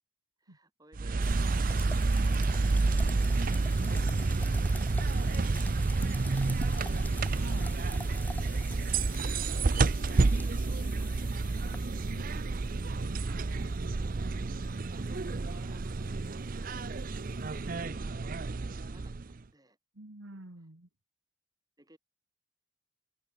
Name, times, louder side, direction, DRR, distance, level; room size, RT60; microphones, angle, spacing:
voice 1, 0.4-2.8 14.9-17.0 17.3-19.8 21.8-22.0, right 1 dB, 20° right, 6.4 m, -60 dB
sound 1, 0.9-19.4, right 3 dB, 45° right, 0.5 m, -29 dB
sound 2, 1.2-17.7, left 2 dB, 10° left, 3.2 m, -49 dB
voice 2, 7.3-7.7 12.0-12.3 12.9-13.9 15.7-15.9 19.9-20.9, right 2 dB, 80° right, 2.1 m, -48 dB
head